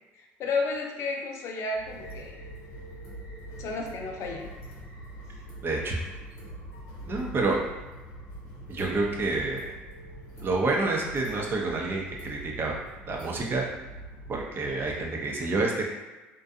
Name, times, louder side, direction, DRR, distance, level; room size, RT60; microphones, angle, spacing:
voice 1, 0.1-2.3 3.6-4.5, left 3 dB, 55° left, 1 dB, 0.5 m, -32 dB
sound 1, 1.7-15.1, right 1 dB, 75° left, 0.9 m, -43 dB
voice 2, 5.6-6.0 7.1-7.6 8.7-9.7 10.4-12.7 13.1-13.6 14.3-15.9, right 3 dB, 40° right, -1 dB, 0.6 m, -28 dB
2.5 x 2.2 x 2.5 m, 1.2 s
supercardioid pair, 75°, 6 cm